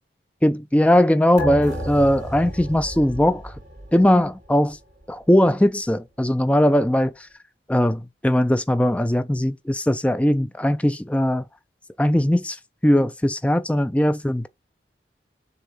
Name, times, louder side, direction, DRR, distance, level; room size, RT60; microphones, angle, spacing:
voice 1, 0.4-3.5 3.9-4.8 5.1-7.3 7.7-11.4 12.0-14.5, left 1 dB, 5° left, 0.4 m, -19 dB
sound 1, 1.4-4.3 4.6-4.7, right 1 dB, 40° right, 4.0 m, -32 dB
6.8 x 3.5 x 5.4 m
head